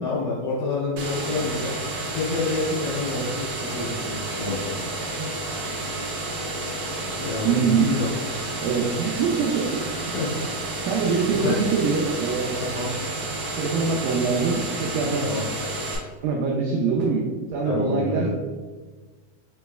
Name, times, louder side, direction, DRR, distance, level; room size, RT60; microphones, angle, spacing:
voice 1, 0.0-1.7 2.1-4.7 7.2-8.1 10.1-10.3 11.3-11.6 12.7-12.9 15.2-15.5 17.7-18.3, left 3 dB, 70° left, -9 dB, 2.0 m, -28 dB
sound 1, 1.0-16.0, right 2 dB, 75° right, 2.2 m, -31 dB
voice 2, 7.4-8.0 8.6-9.8 10.1-10.2 10.9-12.6 13.6-15.2 16.2-18.3, right 5 dB, 90° right, -2 dB, 2.0 m, -24 dB
5.8 x 3.1 x 2.3 m, 1.3 s
omnidirectional pair, 4.6 m